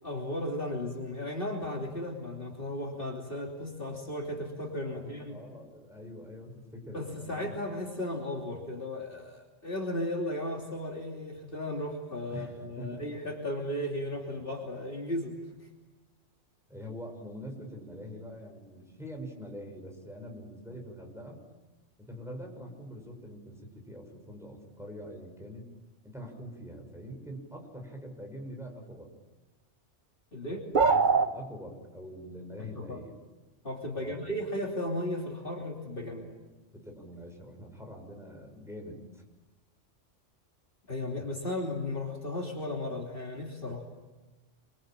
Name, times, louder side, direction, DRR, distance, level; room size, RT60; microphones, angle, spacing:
voice 1, 0.0-5.4 6.9-15.7 30.3-30.6 32.6-33.0 33.6-36.4 40.9-43.9, left 1 dB, 45° left, 0 dB, 3.3 m, -35 dB
voice 2, 4.8-7.4 12.3-13.0 14.3-14.4 16.7-21.4 22.1-25.6 26.0-29.1 30.4-33.1 33.9-34.4 36.7-39.2, equal, ahead, 1 dB, 6.0 m, -44 dB
sound 1, 30.7-31.3, right 4 dB, 45° right, 1.1 m, -22 dB
26.5 x 24.0 x 9.0 m, 1.1 s
omnidirectional pair, 1.3 m